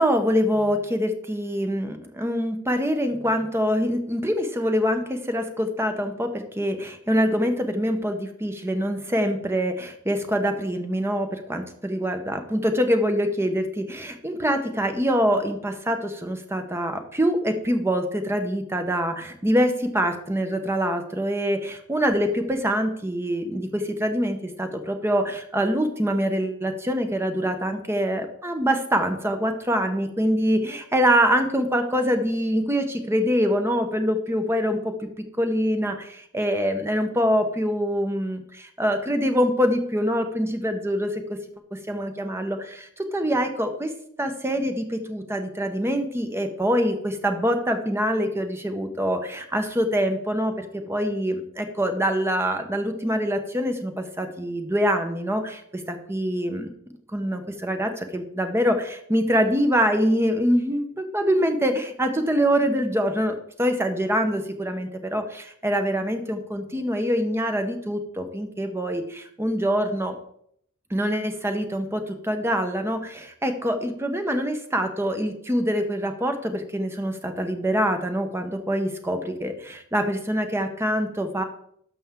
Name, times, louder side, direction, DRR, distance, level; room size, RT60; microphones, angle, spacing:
voice 1, 0.0-35.1 35.4-41.2 41.7-43.9 44.2-55.6 55.9-56.7 57.1-70.1 70.9-81.4, equal, 10° right, 6 dB, 0.9 m, -25 dB
11.5 x 6.0 x 3.7 m, 0.69 s
head